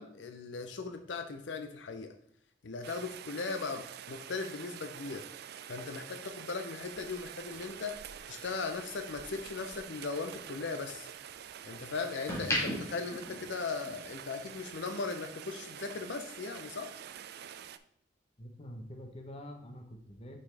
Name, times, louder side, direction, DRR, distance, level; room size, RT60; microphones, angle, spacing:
voice 1, 0.0-2.1 2.6-5.2 5.7-11.1 11.6-16.9, left 4 dB, 80° left, 7 dB, 0.6 m, -38 dB
Rain, 2.8-17.8, right 9 dB, 60° right, 0.4 m, -47 dB
sound 1, 7.4-9.8 10.2-11.6 12.0-14.2 14.5-14.7, left 1 dB, 15° left, 1.6 m, -37 dB
voice 2, 18.4-20.4, equal, 35° left, 3 dB, 0.9 m, -46 dB
6.0 x 5.6 x 3.3 m, 0.69 s
head